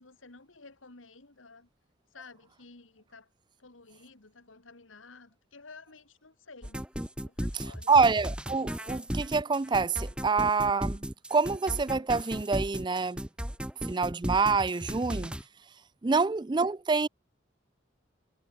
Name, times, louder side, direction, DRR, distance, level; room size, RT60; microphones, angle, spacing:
voice 1, 0.0-1.7 2.1-3.3 3.6-6.8 7.2-7.9 16.2-16.3, left 3 dB, 85° left, 2.3 m, -52 dB
sound 1, 6.6-15.4, equal, 5° right, 1.2 m, -35 dB
voice 2, 7.9-11.1 11.3-13.2 13.9-15.3 16.0-17.1, right 4 dB, 25° right, 0.4 m, -26 dB
head